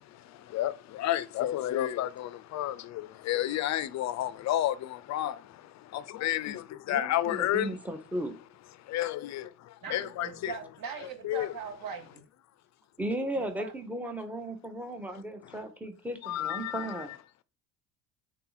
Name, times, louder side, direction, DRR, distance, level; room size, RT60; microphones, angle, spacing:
voice 1, 0.1-7.8 8.9-10.5 11.2-11.5 16.2-16.9, left 13 dB, 45° left, 0.4 m, -31 dB
voice 2, 6.9-8.3 13.0-17.1, right 1 dB, 5° right, 0.7 m, -35 dB
voice 3, 9.8-12.2 13.3-13.7, right 5 dB, 55° right, 1.2 m, -40 dB
4.0 x 2.9 x 3.9 m
supercardioid pair, 95°, 42 cm